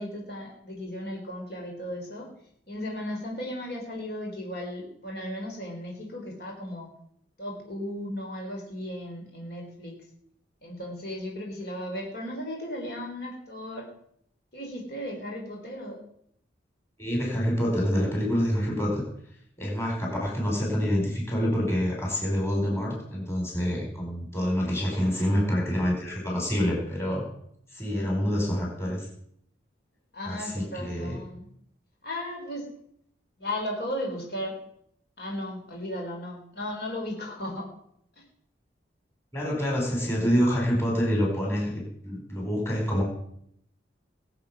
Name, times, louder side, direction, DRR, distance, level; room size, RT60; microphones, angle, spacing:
voice 1, 0.0-2.3 2.7-6.9 7.4-10.0 10.6-13.9 14.5-16.0 24.8-25.4 30.1-31.5 32.0-32.7 33.4-34.6 35.2-37.7, left 1 dB, 60° left, 0 dB, 4.1 m, -35 dB
voice 2, 17.0-19.0 19.6-27.3 27.7-29.1 30.2-31.2 39.3-43.0, equal, 15° left, -2 dB, 4.8 m, -27 dB
21.0 x 7.7 x 6.0 m, 0.71 s
head